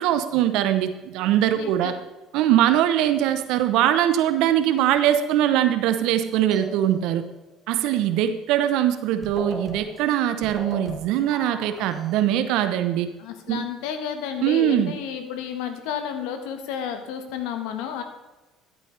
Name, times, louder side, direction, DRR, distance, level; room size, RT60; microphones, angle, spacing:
voice 1, 0.0-1.9 2.3-7.2 7.7-13.1 13.5-13.6 14.4-14.9, right 11 dB, 70° right, 10 dB, 0.9 m, -22 dB
voice 2, 1.5-1.9 13.2-18.0, left 8 dB, 75° left, 7 dB, 1.4 m, -31 dB
sound 1, 6.5-7.3 8.9-9.0 9.2-12.2, right 1 dB, 10° right, 1.7 m, -38 dB
13.5 x 8.3 x 3.4 m, 1.1 s
hypercardioid pair, 70°, 0 cm